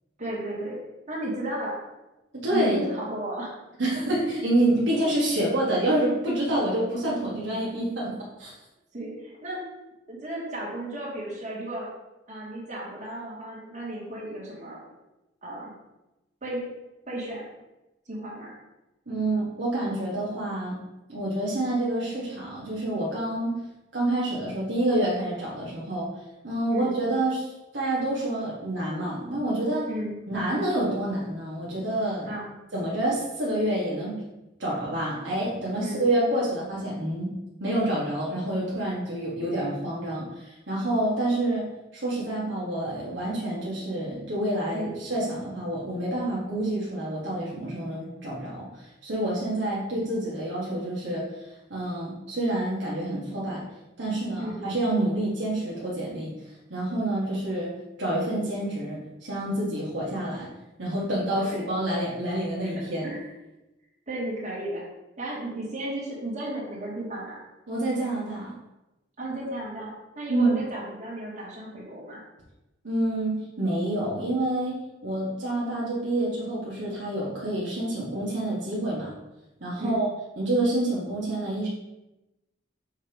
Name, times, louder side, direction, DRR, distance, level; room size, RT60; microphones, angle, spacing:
voice 1, 0.2-0.8 1.1-1.8 2.5-3.5 8.9-9.7 10.1-11.9 12.3-14.8 15.4-15.7 16.4-16.7 17.1-17.5 18.1-18.5 26.7-27.0 29.9-30.2 32.2-32.5 35.8-36.1 44.7-45.0 54.4-54.7 61.4-61.7 62.6-62.7 63.0-63.2 64.1-64.8 65.2-67.4 69.2-72.2 79.8-80.1, right 1 dB, 40° right, -5 dB, 1.9 m, -34 dB
voice 2, 2.3-2.8 3.8-8.5 19.1-20.8 21.1-23.6 23.9-26.1 26.4-29.9 30.3-32.3 32.7-34.2 34.6-37.3 37.6-53.6 54.0-57.7 58.0-60.5 60.8-63.1 67.7-68.5 70.3-70.6 72.8-79.1 79.6-80.1 80.4-81.7, right 1 dB, 70° right, -6 dB, 1.3 m, -28 dB
6.5 x 2.9 x 5.1 m, 0.99 s
head